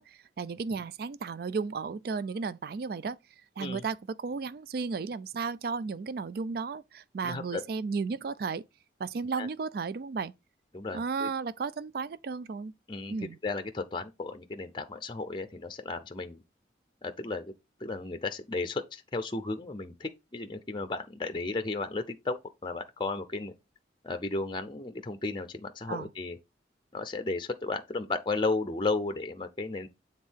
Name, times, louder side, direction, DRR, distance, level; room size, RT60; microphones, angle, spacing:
voice 1, 0.0-3.2 3.6-8.6 9.0-10.3 10.9-12.7 13.1-13.4 25.9-26.1, right 5 dB, 55° right, 0.3 m, -34 dB
voice 2, 7.2-7.6 9.4-9.5 10.7-11.3 12.9-13.2 13.4-16.4 17.0-17.5 17.8-23.5 24.0-26.4 26.9-29.9, left 3 dB, 25° left, 0.5 m, -34 dB
7.5 x 3.6 x 4.5 m
head